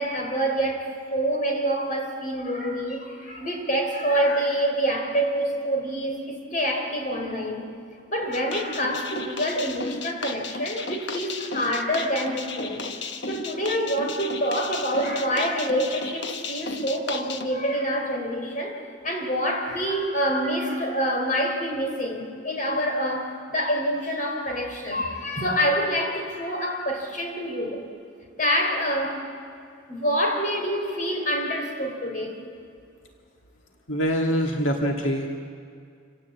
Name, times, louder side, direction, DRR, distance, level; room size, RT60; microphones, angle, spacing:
voice 1, 0.0-7.7 8.1-12.9 13.3-27.8 28.4-29.3 29.9-32.4, equal, 40° left, 2 dB, 3.6 m, -26 dB
sound 1, 8.3-17.5, left 3 dB, 60° left, 1.2 m, -34 dB
voice 2, 33.9-35.3, equal, 75° left, 2 dB, 1.8 m, -24 dB
27.0 x 17.0 x 8.3 m, 2.3 s
head